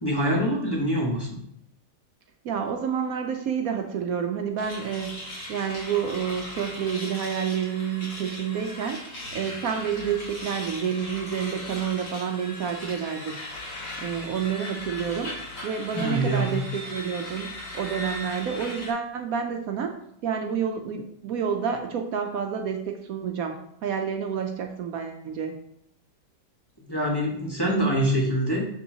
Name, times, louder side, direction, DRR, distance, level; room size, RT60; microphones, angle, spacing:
voice 1, 0.0-1.4 15.9-16.6 26.9-28.7, right 1 dB, 15° left, -4 dB, 1.1 m, -25 dB
voice 2, 2.4-13.4 14.0-20.0 20.2-25.6, right 7 dB, 70° right, 4 dB, 1.0 m, -29 dB
sound 1, 4.6-18.9, left 1 dB, 55° left, 2.1 m, -38 dB
6.9 x 5.4 x 2.8 m, 0.72 s
omnidirectional pair, 1.7 m